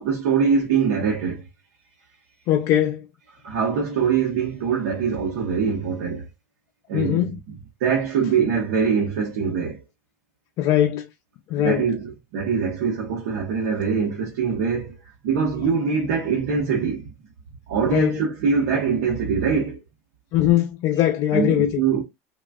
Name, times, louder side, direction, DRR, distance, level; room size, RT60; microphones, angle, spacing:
voice 1, 0.0-1.4 3.4-6.3 6.9-7.4 7.8-9.8 11.6-15.0 15.2-17.1 17.7-19.8 21.3-22.0, right 6 dB, 80° right, 0.9 m, -23 dB
voice 2, 2.5-3.0 6.9-7.4 10.6-11.1 11.5-11.9 17.9-18.2 20.3-21.8, left 11 dB, 55° left, 0.4 m, -21 dB
3.3 x 2.3 x 2.3 m
supercardioid pair, 110°, 8 cm